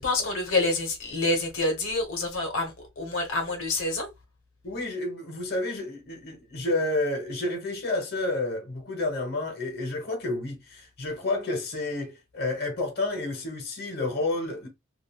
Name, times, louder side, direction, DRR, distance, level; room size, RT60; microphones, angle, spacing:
voice 1, 0.0-4.1, left 2 dB, 75° left, 0.9 m, -27 dB
voice 2, 4.6-14.7, left 2 dB, 50° left, 1.0 m, -30 dB
3.3 x 2.5 x 2.2 m
head